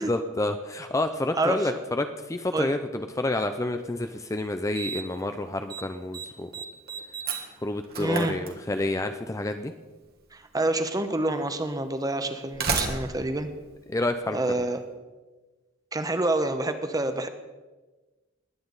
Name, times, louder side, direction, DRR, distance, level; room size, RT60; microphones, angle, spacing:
voice 1, 0.0-6.6 7.6-9.7 13.9-14.4, left 2 dB, 15° left, 8 dB, 0.5 m, -29 dB
Slam, 3.9-4.0 4.7-5.2 5.5-5.8 6.1-9.1 10.2-10.3 11.2-11.3 12.2-14.6, right 5 dB, 50° right, 1.7 m, -33 dB
voice 2, 8.0-8.4 10.3-13.5 14.3-14.8 15.9-17.3, right 2 dB, 20° right, 8 dB, 1.0 m, -27 dB
21.0 x 9.1 x 4.0 m, 1.2 s
head